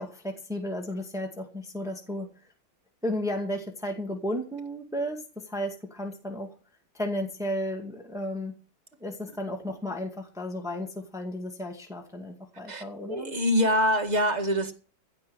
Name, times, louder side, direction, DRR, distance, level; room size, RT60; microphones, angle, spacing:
voice 1, 0.0-2.3 3.0-6.5 6.9-8.5 9.0-13.4, left 1 dB, ahead, 2.0 m, -33 dB
voice 2, 12.7-14.7, equal, 20° right, 1.8 m, -25 dB
16.0 x 5.4 x 9.3 m
omnidirectional pair, 2.1 m